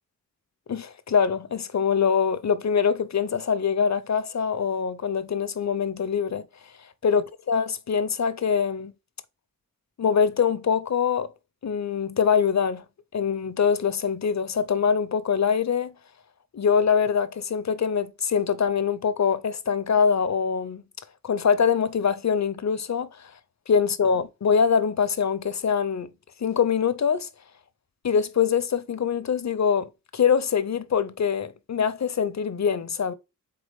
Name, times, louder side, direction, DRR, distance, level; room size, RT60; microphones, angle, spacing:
voice 1, 0.7-6.5 7.0-8.9 10.0-11.3 11.6-12.8 13.1-15.9 16.5-20.8 21.2-23.3 23.7-26.1 26.4-27.3 28.0-33.1, left 6 dB, 50° left, 0.6 m, -24 dB
4.2 x 3.8 x 3.3 m
wide cardioid pair, 60°, 36 cm